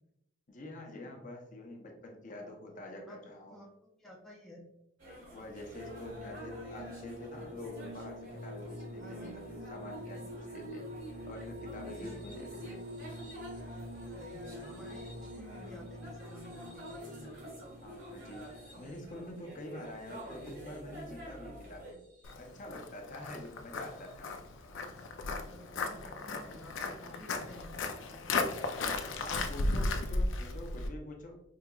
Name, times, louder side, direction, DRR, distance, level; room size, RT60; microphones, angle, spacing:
voice 1, 0.5-3.6 5.3-10.9 11.2-12.8 15.0-15.1 17.8-22.0 22.3-24.3 27.0-27.2 29.2-31.4, left 1 dB, 45° left, 2 dB, 0.7 m, -46 dB
voice 2, 2.7-4.6 9.0-9.4 11.9-12.2 14.2-17.5 25.5-27.8 28.1-28.5, left 1 dB, ahead, -3 dB, 0.5 m, -52 dB
sound 1, 5.0-21.9, right 1 dB, 75° right, 1.5 m, -49 dB
sound 2, 5.7-21.0 21.8-22.6 24.0-24.1, left 1 dB, 45° right, 0.8 m, -47 dB
Walk footsteps, 22.2-30.9, left 3 dB, 75° left, 0.4 m, -35 dB
4.8 x 2.8 x 2.3 m, 0.82 s
head